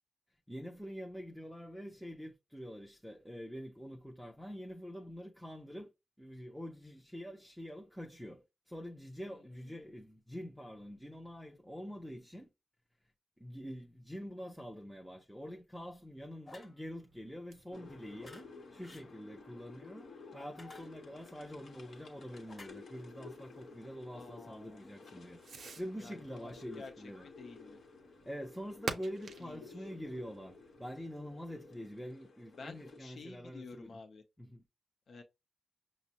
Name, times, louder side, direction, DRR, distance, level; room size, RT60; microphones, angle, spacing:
voice 1, 0.5-5.9 6.2-12.5 13.4-27.3 28.2-33.9 34.4-34.6, equal, ahead, 0.4 m, -46 dB
sound 1, 16.5-16.8 18.2-18.4 18.8-19.1 20.4-21.3 22.5-22.7, left 2 dB, 30° left, 0.9 m, -53 dB
Fireworks, 16.8-31.4, right 5 dB, 70° right, 0.5 m, -51 dB
sound 2, 17.7-33.0, left 4 dB, 80° left, 0.9 m, -54 dB
voice 2, 24.1-24.8 26.0-26.9 27.2-27.8 29.4-29.9 32.5-34.2 35.1-35.2, left 4 dB, 60° left, 0.5 m, -51 dB
5.9 x 2.0 x 2.7 m
wide cardioid pair, 130°, 0 cm